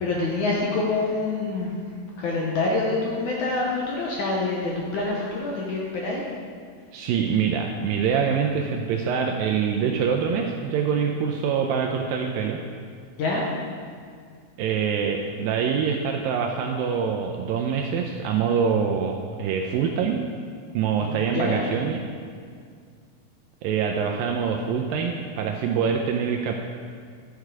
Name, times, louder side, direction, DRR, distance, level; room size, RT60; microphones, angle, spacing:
voice 1, 0.0-1.7 2.2-6.2 13.2-13.4 21.0-21.6, left 3 dB, 70° left, -3 dB, 1.9 m, -26 dB
voice 2, 6.9-12.6 14.6-20.2 20.7-22.0 23.6-26.5, right 6 dB, 85° right, 2 dB, 2.1 m, -25 dB
11.5 x 6.5 x 4.8 m, 2.1 s
omnidirectional pair, 4.6 m